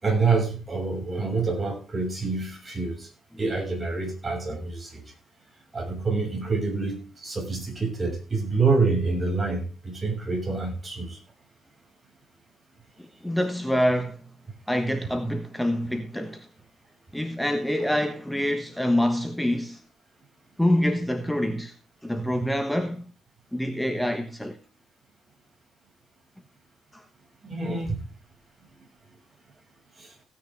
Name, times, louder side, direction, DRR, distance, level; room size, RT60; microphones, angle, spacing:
voice 1, 0.0-3.1 3.4-5.0 5.7-11.2 27.5-28.0 30.0-30.1, right 4 dB, 25° right, 6.2 m, -27 dB
voice 2, 13.0-14.3 14.7-16.5 17.1-19.8 20.6-21.7 22.0-23.0 23.5-24.6 26.9-27.0, left 1 dB, 5° left, 1.3 m, -26 dB
16.5 x 9.6 x 3.5 m
cardioid pair, 105°, 0 cm